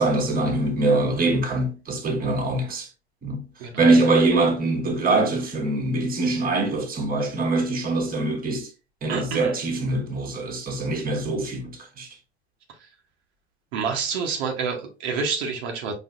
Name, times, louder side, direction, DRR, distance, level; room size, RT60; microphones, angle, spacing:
voice 1, 0.0-2.9 3.2-3.4 3.8-8.7 9.0-12.1, right 2 dB, 25° right, 1.2 m, -23 dB
voice 2, 9.1-9.5 12.7-12.9 13.7-15.9, right 5 dB, 70° right, 0.9 m, -28 dB
4.2 x 2.9 x 2.4 m
hypercardioid pair, 80°, 33 cm